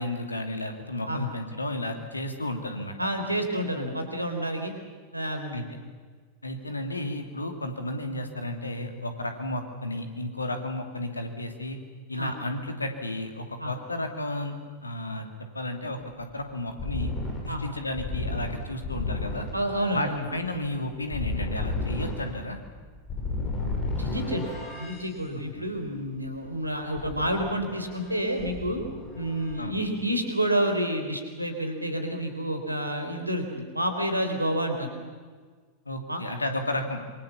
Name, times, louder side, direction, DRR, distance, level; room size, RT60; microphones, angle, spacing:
voice 1, 0.0-3.1 5.5-5.6 6.4-11.8 12.1-14.5 14.8-15.3 15.5-17.1 17.4-19.5 19.9-22.6 25.5-25.6 29.6-29.8 35.9-37.0, left 1 dB, 80° left, 5 dB, 2.8 m, -33 dB
voice 2, 3.0-4.7 5.1-5.5 12.2-12.3 13.6-13.7 17.5-17.7 19.5-20.2 24.0-28.8 29.1-34.9 36.1-36.2, right 1 dB, 85° right, 5 dB, 3.6 m, -29 dB
sound 1, 16.7-25.0 27.0-28.1 28.4-29.5, left 2 dB, 30° left, 7.4 m, -33 dB
26.5 x 24.0 x 7.2 m, 1.5 s
figure-of-eight pair, 90°, 0 cm